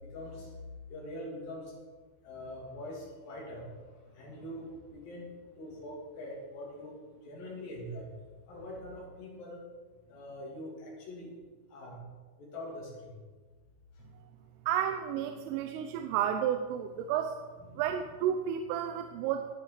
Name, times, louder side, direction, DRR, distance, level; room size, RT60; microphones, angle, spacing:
voice 1, 0.1-0.5 0.9-1.6 2.2-3.7 4.1-5.3 5.6-7.0 7.2-8.1 8.5-9.6 10.1-11.3 11.7-12.0 12.4-13.1 17.7-17.8, left 1 dB, 50° left, -3 dB, 4.1 m, -43 dB
voice 2, 14.7-17.4 17.7-19.5, right 9 dB, 90° right, 5 dB, 3.2 m, -31 dB
18.5 x 6.9 x 4.9 m, 1.4 s
omnidirectional pair, 5.6 m